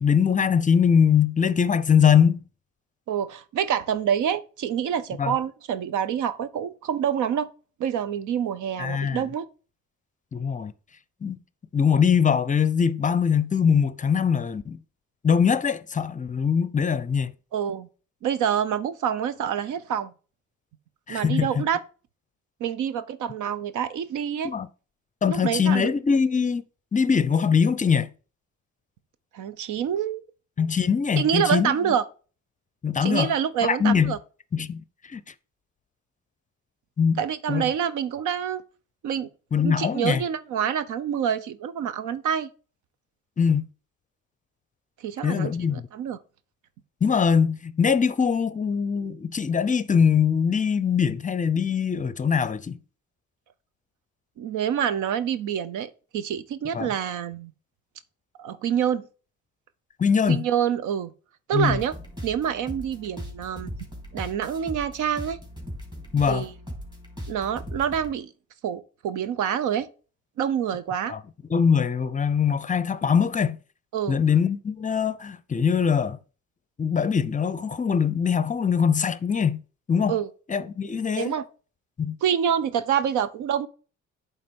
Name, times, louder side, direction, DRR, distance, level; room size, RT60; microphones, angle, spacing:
voice 1, 0.0-2.4 5.2-5.4 8.8-9.2 10.3-10.7 11.2-11.4 11.7-14.8 15.2-17.3 21.1-21.6 24.4-24.7 25.2-26.6 26.9-28.1 30.6-31.8 32.8-33.3 33.6-34.1 34.5-34.8 35.1-35.2 37.0-37.2 37.5-37.7 39.5-40.2 43.4-43.7 45.2-45.8 47.0-52.8 56.7-56.9 60.0-60.4 61.5-61.8 66.1-66.5 71.1-71.2 71.5-73.6 74.1-76.2 76.8-79.6 79.9-80.1 80.5-81.3 82.0-82.2, left 7 dB, 25° left, 0.5 m, -22 dB
voice 2, 3.1-7.5 7.8-9.5 17.5-17.9 18.2-20.1 21.1-21.8 22.6-24.5 25.2-25.9 29.3-30.2 31.2-32.0 33.0-34.2 37.2-38.6 39.0-39.3 39.6-42.5 45.0-46.2 54.4-57.5 58.4-59.0 60.3-61.1 61.5-61.9 62.2-63.7 64.1-65.4 66.3-66.5 67.3-68.3 68.6-69.9 70.4-71.1 73.9-74.2 80.1-80.3 81.2-81.5 82.2-83.7, right 8 dB, 80° right, 0.7 m, -27 dB
sound 1, 61.6-68.1, equal, 15° right, 3.0 m, -39 dB
8.7 x 3.5 x 5.2 m
cardioid pair, 90°, 30 cm